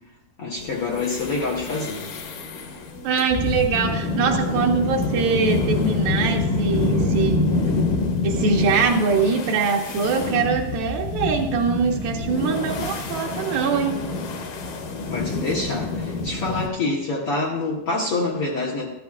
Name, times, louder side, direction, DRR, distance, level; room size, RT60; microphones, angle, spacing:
voice 1, 0.4-2.0 15.1-18.9, left 3 dB, 85° left, -5 dB, 1.2 m, -26 dB
sound 1, 0.6-16.7, left 3 dB, 70° left, 2.4 m, -26 dB
voice 2, 3.0-7.5 8.2-14.0, right 5 dB, 80° right, 1 dB, 2.3 m, -23 dB
14.0 x 11.0 x 2.4 m, 0.96 s
omnidirectional pair, 4.5 m